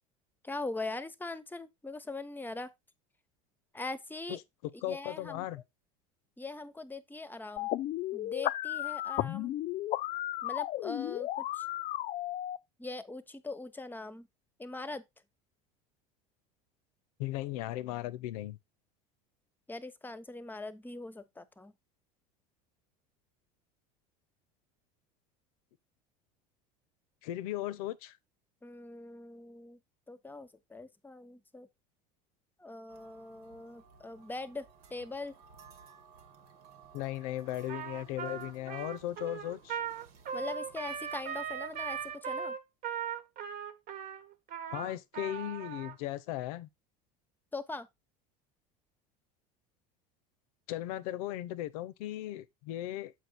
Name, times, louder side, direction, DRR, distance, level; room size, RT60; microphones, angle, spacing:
voice 1, 0.4-2.7 3.7-4.4 4.7-5.5 6.4-7.7 8.1-9.5 10.4-11.7 12.8-14.3 14.6-15.0 19.7-21.7 28.6-29.8 30.1-31.7 32.6-35.3 40.3-42.6 47.5-47.9, left 3 dB, 10° left, 0.8 m, -41 dB
voice 2, 4.8-5.6 17.2-18.6 27.2-28.2 36.9-39.8 44.7-46.7 50.7-53.1, left 14 dB, 75° left, 0.7 m, -37 dB
sound 1, 7.6-12.6, left 14 dB, 45° left, 0.4 m, -34 dB
sound 2, 32.9-42.2, right 6 dB, 80° right, 1.6 m, -58 dB
Trumpet, 37.7-45.9, right 8 dB, 50° right, 1.2 m, -39 dB
7.5 x 4.7 x 4.0 m
hypercardioid pair, 95°, 19 cm